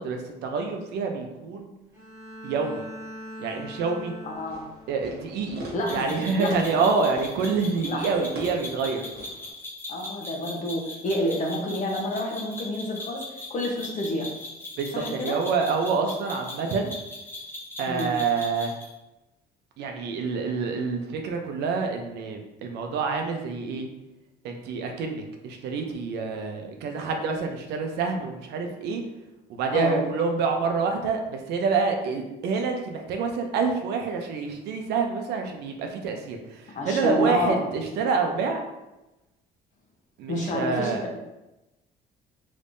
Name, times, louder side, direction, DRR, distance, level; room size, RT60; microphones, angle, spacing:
voice 1, 0.0-1.7 2.4-2.8 3.4-4.1 4.9-5.6 5.9-9.0 14.8-16.9 17.8-18.7 19.8-23.9 24.4-29.0 29.5-38.6 40.2-41.0, right 4 dB, 80° right, 4 dB, 0.6 m, -27 dB
Bowed string instrument, 1.9-5.1, equal, 20° right, 1.3 m, -41 dB
voice 2, 4.2-4.6 5.7-6.5 7.9-8.0 9.9-13.2 13.5-14.3 14.9-15.4 17.9-18.1 29.7-30.0 36.7-37.6 40.3-41.2, left 1 dB, 45° left, 0 dB, 0.9 m, -29 dB
Fireworks, 4.3-9.5, right 1 dB, 65° right, 1.2 m, -43 dB
sound 1, 5.9-18.9, left 2 dB, 10° left, 1.0 m, -40 dB
3.4 x 3.2 x 2.6 m, 0.99 s
cardioid pair, 110°, 17 cm